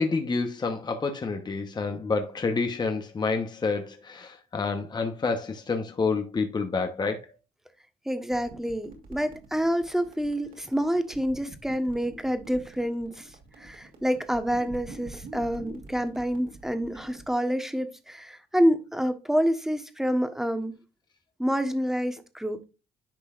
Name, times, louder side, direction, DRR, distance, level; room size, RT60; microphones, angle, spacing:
voice 1, 0.0-7.2, left 4 dB, 25° left, 1.1 m, -28 dB
voice 2, 8.1-13.3 13.6-20.8 21.4-22.6, equal, ahead, 1.2 m, -27 dB
sound 1, 8.3-17.3, right 3 dB, 55° right, 2.8 m, -47 dB
10.5 x 5.4 x 2.5 m
cardioid pair, 110°, 17 cm